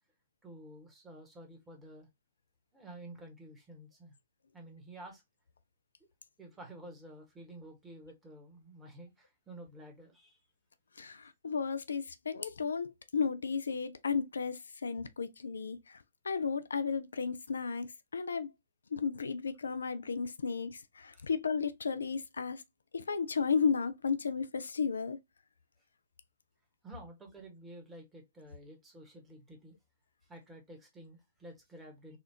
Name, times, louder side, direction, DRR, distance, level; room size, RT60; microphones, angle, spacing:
voice 1, 0.4-2.1 2.7-4.1 4.5-5.2 6.4-10.4 21.1-21.3 26.8-29.7 30.2-32.2, right 1 dB, 10° right, 1.3 m, -51 dB
voice 2, 11.0-16.0 16.2-18.5 18.9-22.6 22.9-25.2, left 5 dB, 70° left, 0.4 m, -34 dB
4.2 x 2.4 x 2.7 m
figure-of-eight pair, 115°, 0 cm